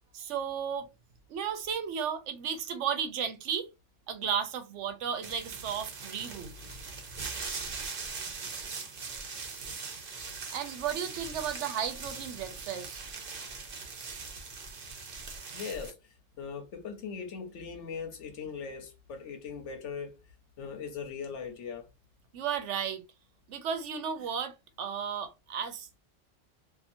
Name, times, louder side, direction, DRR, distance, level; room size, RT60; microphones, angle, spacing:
voice 1, 0.1-0.9 1.3-3.7 4.1-6.5 10.5-13.0 22.3-23.0 23.5-25.9, right 7 dB, 80° right, 1.0 m, -34 dB
sound 1, 5.2-15.9, right 4 dB, 55° right, 0.9 m, -41 dB
voice 2, 15.5-20.2 20.6-21.9, left 6 dB, 80° left, 1.1 m, -40 dB
2.8 x 2.5 x 2.5 m
omnidirectional pair, 1.2 m